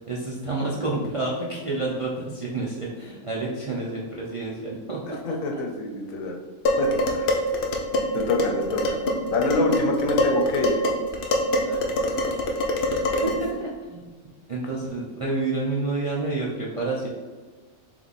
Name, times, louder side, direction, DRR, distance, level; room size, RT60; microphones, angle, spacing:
voice 1, 0.1-5.4 11.6-11.9 13.2-14.0 14.5-17.1, right 2 dB, 45° right, -5 dB, 0.4 m, -29 dB
voice 2, 5.2-6.3 6.7-7.4 8.1-9.0 9.3-10.8, left 2 dB, 80° left, 3 dB, 1.1 m, -26 dB
Dishes pots and pans, 6.7-13.5, left 1 dB, 55° left, 0.6 m, -25 dB
3.5 x 3.2 x 4.0 m, 1.3 s
omnidirectional pair, 1.4 m